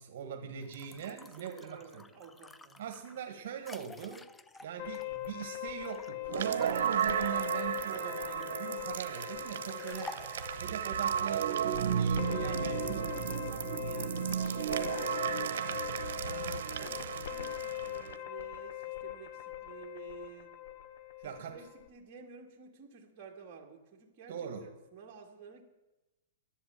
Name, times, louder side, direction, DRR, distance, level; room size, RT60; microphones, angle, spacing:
voice 1, 0.0-2.0 2.8-4.3 4.6-10.1 10.5-13.2 16.2-16.7 21.2-21.6 24.3-24.7, right 8 dB, 55° right, 5 dB, 1.5 m, -42 dB
sound 1, 0.6-6.1 6.6-8.7 9.7-10.6, left 3 dB, 5° left, 0.3 m, -51 dB
voice 2, 1.0-2.8 9.6-10.3 12.3-15.9 16.8-20.5 21.3-25.6, right 6 dB, 30° right, -1 dB, 1.8 m, -51 dB
sound 2, 4.8-21.9, left 13 dB, 65° left, 1.2 m, -42 dB
sound 3, 6.3-18.2, right 8 dB, 70° right, 0.8 m, -34 dB
11.0 x 7.5 x 8.9 m, 1.0 s
supercardioid pair, 165°, 0 cm